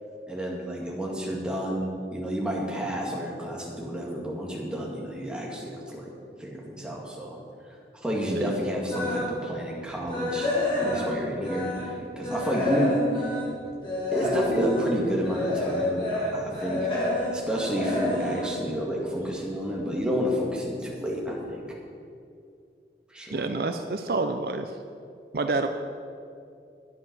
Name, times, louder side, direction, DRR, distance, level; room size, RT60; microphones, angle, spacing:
voice 1, 0.3-6.1 6.4-7.4 8.0-10.5 10.8-13.3 14.1-16.8 17.3-21.6 23.1-23.5, equal, 5° right, -3 dB, 2.0 m, -30 dB
sound 1, 8.9-9.4 9.8-12.0 12.2-19.5 19.8-20.1 20.6-20.7 21.0-21.1, left 1 dB, 30° left, 3.1 m, -29 dB
voice 2, 23.3-24.7 25.3-25.7, right 3 dB, 60° right, 7 dB, 0.5 m, -28 dB
11.0 x 9.3 x 6.1 m, 2.4 s
head